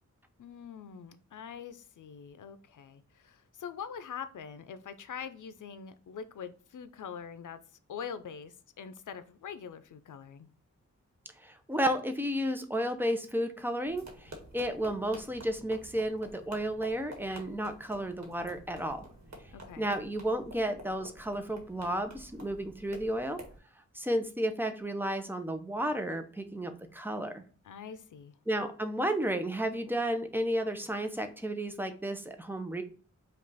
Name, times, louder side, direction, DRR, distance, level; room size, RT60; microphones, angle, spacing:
voice 1, 0.4-7.6 7.9-10.5 19.5-19.9 27.6-28.3, left 7 dB, 80° left, 11 dB, 0.6 m, -44 dB
voice 2, 11.4-19.0 19.8-23.4 23.9-27.4 28.5-32.8, right 1 dB, 5° right, 6 dB, 0.6 m, -32 dB
sound 1, 13.9-23.6, right 1 dB, 65° right, 1.4 m, -50 dB
5.2 x 2.4 x 4.0 m, 0.40 s
wide cardioid pair, 115°, 30 cm